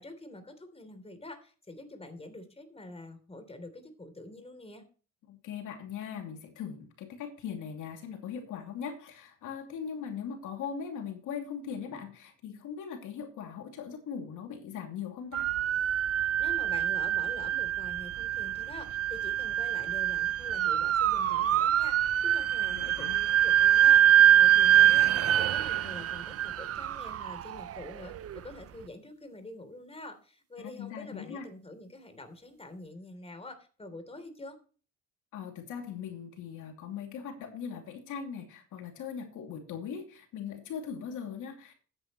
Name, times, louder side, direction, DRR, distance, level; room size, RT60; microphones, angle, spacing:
voice 1, 0.0-4.8 16.2-34.6, left 2 dB, 20° left, 8 dB, 3.3 m, -46 dB
voice 2, 5.3-15.5 22.6-23.2 30.6-31.5 35.3-41.7, left 7 dB, 85° left, 3 dB, 2.8 m, -40 dB
sound 1, 15.3-28.4, right 11 dB, 50° right, 0.6 m, -25 dB
13.5 x 9.9 x 3.1 m, 0.38 s
cardioid pair, 90°, 30 cm